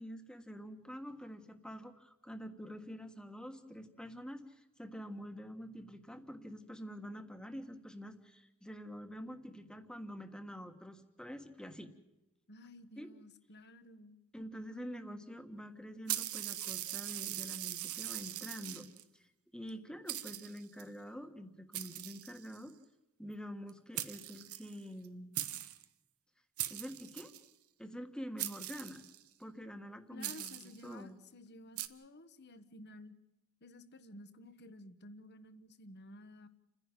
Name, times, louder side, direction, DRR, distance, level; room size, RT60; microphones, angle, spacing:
voice 1, 0.0-11.9 13.0-13.1 14.3-18.9 19.1-19.3 19.5-22.7 23.2-25.3 26.7-27.3 27.8-29.0 29.4-31.2, equal, 5° left, 7 dB, 1.5 m, -47 dB
voice 2, 12.5-14.2 14.6-15.2 30.1-33.2 33.6-36.5, left 1 dB, 50° left, 12 dB, 1.3 m, -53 dB
sound 1, 16.1-19.0 19.7-19.8 20.1-20.8 21.7-22.7 23.7-23.8 24.0-25.1 25.4-25.8 26.6-27.5 28.4-29.3 30.2-30.8 31.8-31.9, right 13 dB, 85° right, 1.1 m, -41 dB
30.0 x 10.5 x 9.0 m, 0.92 s
head